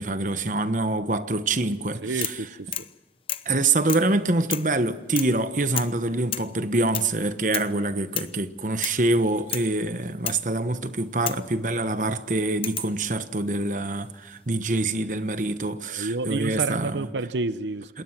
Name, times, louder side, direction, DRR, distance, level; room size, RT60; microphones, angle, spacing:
voice 1, 0.0-2.3 3.4-17.1 17.9-18.0, right 2 dB, 45° right, 1.2 m, -25 dB
voice 2, 2.0-2.7 15.9-18.0, right 3 dB, 85° right, 0.8 m, -29 dB
sound 1, 2.2-2.5 2.7-2.9 3.3-3.5 3.9-4.1 4.5-4.7 5.2-5.4 5.8-6.0 6.3-6.5 6.9-7.1 7.5-7.7 8.2-8.4 8.8-9.0 9.5-9.7 10.3-10.5 11.3-11.5 12.6-13.0 14.1-14.6, left 10 dB, 30° left, 0.8 m, -32 dB
27.5 x 21.0 x 6.0 m
head